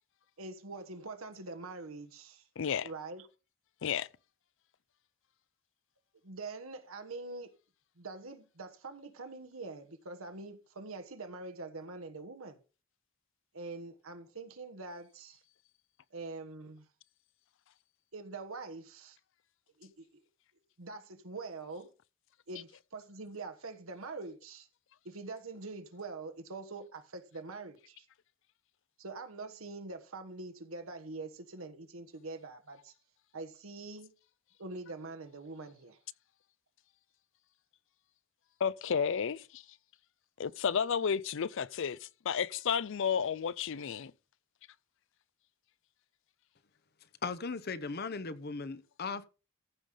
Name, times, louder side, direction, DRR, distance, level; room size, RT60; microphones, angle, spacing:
voice 1, 0.4-2.4 2.8-3.3 6.2-7.5 8.0-12.6 13.5-15.4 16.1-16.9 18.1-19.2 19.8-20.2 20.8-21.9 22.5-24.7 25.0-28.1 29.0-32.9 33.3-34.1 34.6-36.0, right 3 dB, 80° right, 1.3 m, -44 dB
voice 2, 2.6-2.9 3.8-4.1 38.6-39.6 40.4-44.1, left 7 dB, 65° left, 0.5 m, -32 dB
voice 3, 47.2-49.3, left 4 dB, 50° left, 0.8 m, -37 dB
14.5 x 5.5 x 5.0 m
head